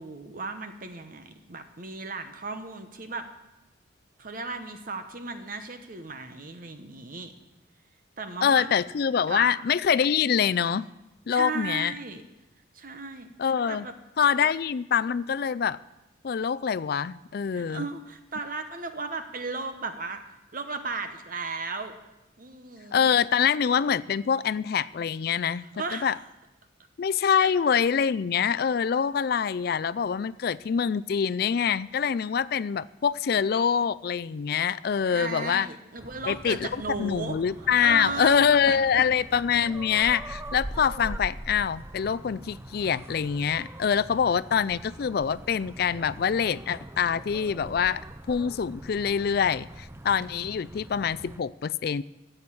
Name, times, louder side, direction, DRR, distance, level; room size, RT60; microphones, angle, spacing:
voice 1, 0.0-3.3 4.2-7.3 8.2-8.7 9.3-9.6 11.3-12.2 12.7-13.3 13.7-14.0 14.4-14.5 17.5-20.2 20.5-21.9 22.4-23.1 25.6-26.1 27.4-27.5 35.0-39.1, right 3 dB, 45° right, 8 dB, 0.9 m, -35 dB
voice 2, 8.4-10.9 11.3-11.9 13.4-13.9 14.2-15.8 16.2-17.9 22.9-25.7 25.9-26.1 27.0-35.7 36.3-36.7 37.0-48.0 48.3-52.0, left 7 dB, 50° left, 16 dB, 0.3 m, -25 dB
sound 1, 36.0-51.4, right 1 dB, 15° right, 0.4 m, -42 dB
13.0 x 7.9 x 8.5 m, 0.98 s
head